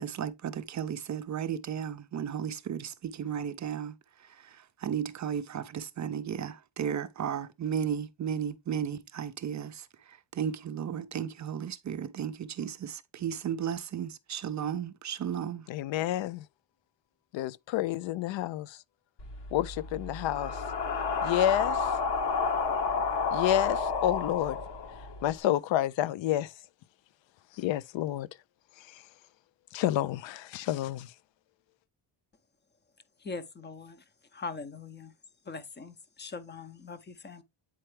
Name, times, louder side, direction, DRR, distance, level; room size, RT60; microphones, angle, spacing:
voice 1, 0.0-4.0 4.4-15.7, right 8 dB, 40° right, 0.5 m, -34 dB
voice 2, 15.7-16.4 17.3-18.8 19.5-20.6 21.2-21.9 23.3-24.6 25.2-26.5 27.6-28.3 29.7-31.1, left 12 dB, 80° left, 0.5 m, -29 dB
sound 1, 19.2-25.3, left 4 dB, 65° left, 1.5 m, -31 dB
voice 3, 33.2-34.0 34.3-35.1 35.5-37.4, left 4 dB, 25° left, 0.7 m, -41 dB
8.8 x 4.4 x 3.2 m
cardioid pair, 150°, 45 cm